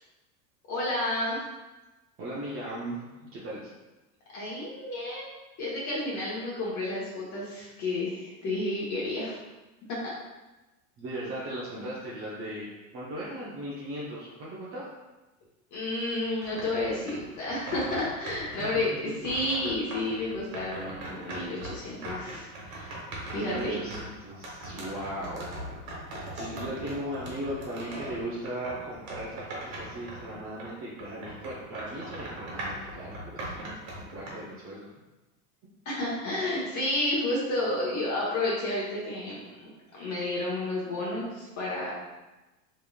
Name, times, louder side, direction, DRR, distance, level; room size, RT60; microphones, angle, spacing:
voice 1, 0.7-1.4 4.3-9.4 9.9-10.1 15.7-18.9 19.2-23.0 23.3-23.8 35.8-41.9, left 2 dB, 40° left, -6 dB, 1.1 m, -31 dB
voice 2, 2.2-3.7 11.0-12.7 12.9-14.9 18.6-18.7 23.2-25.5 26.2-34.9, right 1 dB, 30° right, -7 dB, 0.8 m, -38 dB
sound 1, 16.4-18.9 19.2-30.7 31.0-34.3, right 1 dB, 70° right, 1.4 m, -40 dB
3.5 x 3.2 x 2.3 m, 1.1 s
hypercardioid pair, 100°, 43 cm